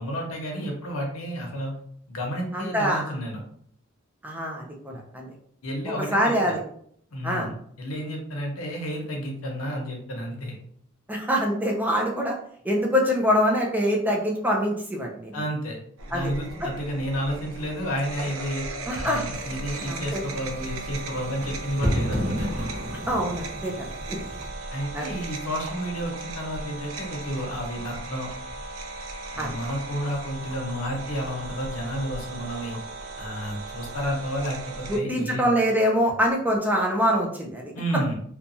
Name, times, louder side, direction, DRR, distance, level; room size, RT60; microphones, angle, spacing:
voice 1, 0.0-1.7 2.1-3.4 4.9-5.0 5.6-6.2 6.4-6.6 7.1-10.5 15.3-15.8 16.1-18.6 19.0-22.5 24.7-28.3 29.3-32.8 33.2-35.5 37.7-38.1, equal, 80° left, 0 dB, 0.8 m, -31 dB
voice 2, 2.5-3.0 4.2-5.3 6.1-6.6 7.2-7.5 11.1-12.4 12.6-15.4 16.1-16.3 18.9-19.2 19.8-20.2 23.1-24.2 24.9-25.1 29.4-29.5 34.9-38.0, equal, 10° right, -1 dB, 0.4 m, -24 dB
sound 1, 16.0-35.0, right 2 dB, 75° right, 0.5 m, -37 dB
sound 2, 19.3-24.5, equal, 40° right, 0.9 m, -32 dB
2.9 x 2.2 x 2.6 m, 0.64 s
head